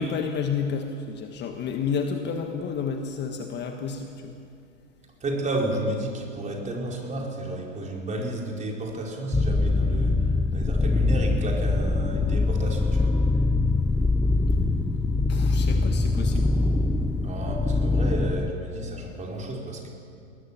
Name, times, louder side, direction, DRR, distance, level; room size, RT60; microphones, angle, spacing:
voice 1, 0.0-4.4 15.3-16.5, left 6 dB, 25° left, 5 dB, 1.5 m, -30 dB
voice 2, 5.2-13.2 17.2-19.9, right 1 dB, 20° right, 0 dB, 4.4 m, -32 dB
sound 1, 9.3-18.5, left 3 dB, 5° left, 0.6 m, -23 dB
22.5 x 18.5 x 7.3 m, 2.5 s
hypercardioid pair, 110°, 38 cm